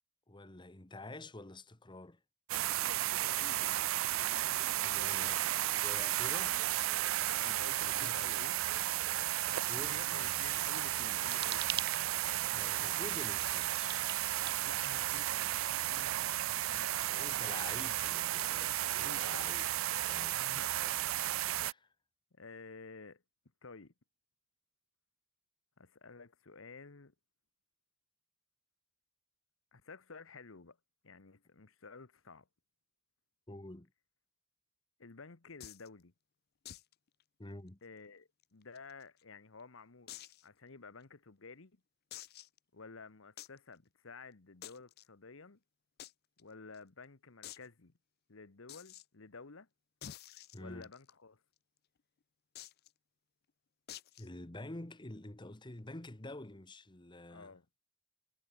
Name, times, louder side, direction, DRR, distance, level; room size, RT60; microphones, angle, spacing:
voice 1, 0.3-2.2 4.8-5.4 5.7-6.6 8.0-8.2 9.3-10.4 12.5-14.1 17.1-19.7 20.1-20.4 20.8-21.0 21.3-21.9 33.5-33.9 37.4-37.8 50.5-50.9 54.2-57.5, left 2 dB, 25° left, 1.3 m, -48 dB
sound 1, 2.5-21.7, right 14 dB, 85° right, 0.5 m, -34 dB
voice 2, 2.9-4.0 4.8-5.1 7.3-8.6 9.9-11.9 14.6-17.1 17.5-17.9 18.8-19.5 20.3-21.0 22.3-23.2 23.6-23.9 25.8-27.1 29.7-30.8 31.0-32.5 35.0-36.1 37.8-40.2 40.4-41.8 42.7-45.6 46.4-47.9 48.3-49.7 50.6-51.4 57.3-57.6, left 4 dB, 80° left, 1.2 m, -52 dB
sound 2, 10.9-15.5, right 10 dB, 55° right, 2.5 m, -46 dB
sound 3, 35.6-35.9 36.7-36.9 37.2-37.3 37.7-37.8 38.4-39.2 40.1-40.4 41.0-41.1 42.1-42.6 43.4-43.6 44.6-45.1 46.0-46.1 46.4-46.5 46.7-46.8 47.4-47.7 48.7-49.0 50.0-51.1 52.6-52.9 53.9-54.3, left 12 dB, 50° left, 0.5 m, -49 dB
head